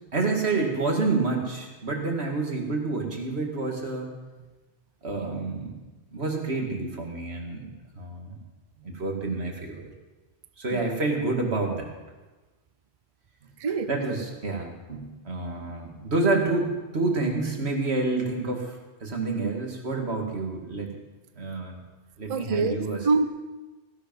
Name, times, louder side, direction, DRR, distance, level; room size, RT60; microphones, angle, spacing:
voice 1, 0.1-4.1 5.0-5.8 6.1-7.7 8.0-8.4 8.8-9.8 10.6-11.9 13.9-20.9 21.4-21.8 22.2-23.1, right 3 dB, 65° right, 1 dB, 2.4 m, -28 dB
voice 2, 22.3-22.8 23.0-23.2, right 4 dB, 40° right, 11 dB, 0.5 m, -24 dB
16.5 x 11.0 x 5.4 m, 1.2 s
omnidirectional pair, 1.2 m